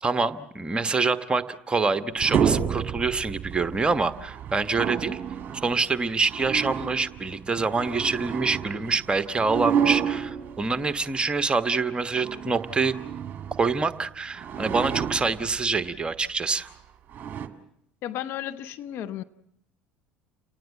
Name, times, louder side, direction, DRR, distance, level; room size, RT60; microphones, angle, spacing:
voice 1, 0.0-5.2 5.5-12.9 13.6-16.7, right 4 dB, 20° right, 1.3 m, -26 dB
sound 1, 1.9-11.2 11.9-14.0 14.3-15.9 16.6-16.7 17.1-17.5, right 8 dB, 35° right, 2.1 m, -30 dB
voice 2, 18.0-19.2, left 11 dB, 50° left, 0.9 m, -33 dB
29.5 x 19.0 x 7.5 m
figure-of-eight pair, 65°, 5 cm